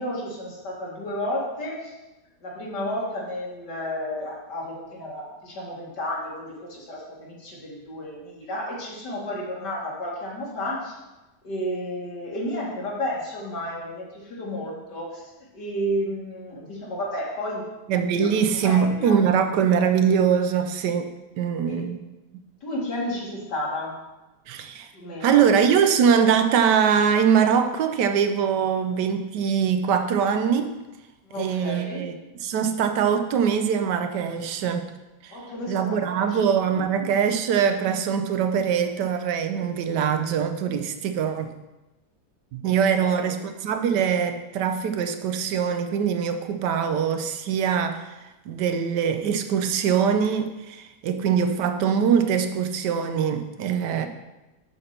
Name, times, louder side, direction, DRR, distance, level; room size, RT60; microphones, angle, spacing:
voice 1, 0.0-1.9 2.4-11.0 11.4-17.6 18.2-18.3 18.5-19.2 21.7-21.9 22.6-24.0 24.9-25.5 31.2-32.2 35.3-37.1 42.9-43.4, left 1 dB, 90° left, -4 dB, 2.5 m, -32 dB
voice 2, 17.9-21.1 21.4-22.0 24.5-24.9 25.2-30.7 31.4-32.1 32.4-34.9 35.2-35.4 35.7-41.5 42.5-54.1, right 7 dB, 90° right, 8 dB, 1.3 m, -23 dB
6.3 x 4.4 x 6.5 m, 1.0 s
omnidirectional pair, 1.8 m